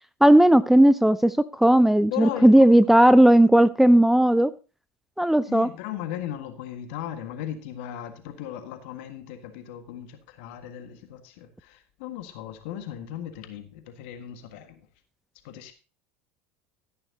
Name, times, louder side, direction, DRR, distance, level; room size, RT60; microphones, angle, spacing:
voice 1, 0.2-4.5 5.2-5.7, right 1 dB, 5° right, 16 dB, 0.4 m, -16 dB
voice 2, 2.1-2.6 5.5-14.9 15.4-15.7, left 10 dB, 65° left, 8 dB, 1.7 m, -37 dB
12.5 x 10.5 x 2.8 m, 0.33 s
hypercardioid pair, 75°, 7 cm